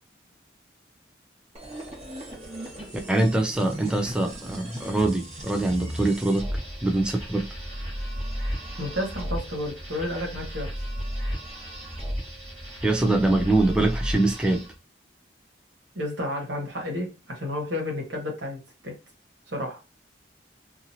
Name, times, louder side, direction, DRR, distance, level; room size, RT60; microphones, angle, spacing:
sound 1, 1.5-14.8, equal, 35° right, 1.3 m, -35 dB
voice 1, 3.1-6.5 6.8-7.5 12.8-14.6, right 2 dB, 5° right, 0.3 m, -23 dB
voice 2, 8.8-10.7 15.9-18.9 19.5-19.8, left 1 dB, 85° right, 1.3 m, -31 dB
2.8 x 2.6 x 2.7 m
head